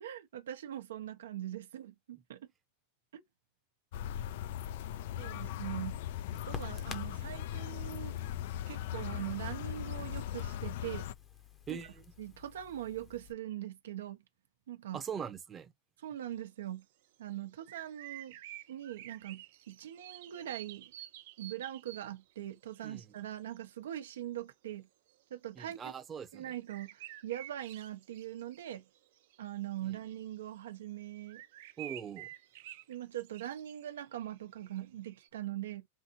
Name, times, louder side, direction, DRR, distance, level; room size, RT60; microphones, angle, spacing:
voice 1, 0.0-2.5 3.1-3.2 5.2-6.0 6.5-8.2 8.7-11.1 11.7-11.8 12.2-14.2 14.7-15.0 16.0-16.8 17.2-18.4 18.7-20.9 21.4-24.9 25.3-25.9 26.3-28.9 29.4-31.4 32.9-35.9, right 12 dB, 90° right, 0.9 m, -42 dB
sound 1, 3.9-11.1, left 11 dB, 60° left, 0.3 m, -39 dB
Crackle, 5.1-13.3, left 5 dB, 20° left, 0.8 m, -53 dB
voice 2, 11.7-12.1 14.9-15.7 22.8-23.2 25.6-26.5 29.8-30.0 31.8-32.3, right 7 dB, 15° right, 0.7 m, -42 dB
sound 2, 16.8-16.9 17.3-22.3 22.7-22.9 23.2-23.7 25.1-25.2 26.3-30.4 30.7-30.8 31.3-35.3, right 14 dB, 60° right, 0.7 m, -50 dB
5.6 x 2.6 x 2.7 m
supercardioid pair, 160°, 0 cm